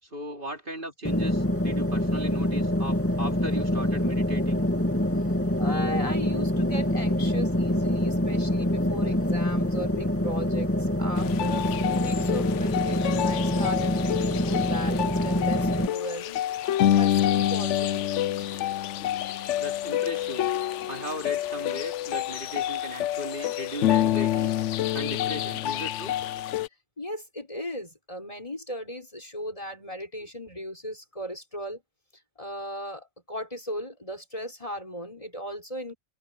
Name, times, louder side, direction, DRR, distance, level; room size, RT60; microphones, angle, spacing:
voice 1, 0.0-4.7 19.6-20.5 20.9-24.5 24.9-26.1, right 1 dB, 45° right, 3.6 m, -37 dB
sound 1, 1.0-15.9, left 1 dB, 10° left, 2.3 m, -25 dB
voice 2, 5.6-16.4 16.9-18.3 27.0-31.8 32.4-35.9, equal, 30° left, 5.3 m, -37 dB
sound 2, 11.2-26.7, left 12 dB, 85° left, 0.9 m, -27 dB
omnidirectional pair, 1.2 m